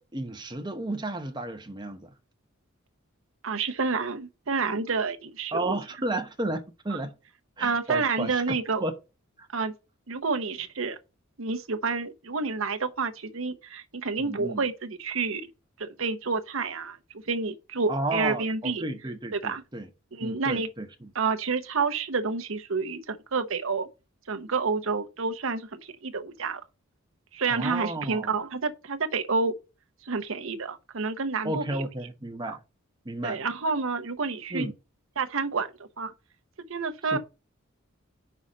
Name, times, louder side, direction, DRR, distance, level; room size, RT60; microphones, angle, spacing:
voice 1, 0.0-2.1 5.5-7.1 7.6-8.9 9.4-9.5 14.2-14.6 17.9-19.9 20.2-21.1 27.5-28.3 31.4-32.6 33.0-33.4 34.5-34.7 37.0-37.2, right 2 dB, 20° right, 0.9 m, -33 dB
voice 2, 3.4-5.8 6.9-7.0 7.6-8.8 9.5-9.7 10.1-11.0 11.4-15.5 15.8-18.8 19.3-19.6 20.1-20.7 21.1-23.9 24.3-26.6 27.3-29.5 30.1-31.8 33.2-34.7 35.2-35.7 36.0-36.1 36.7-37.2, right 4 dB, 65° right, 0.8 m, -29 dB
5.6 x 4.0 x 6.1 m
head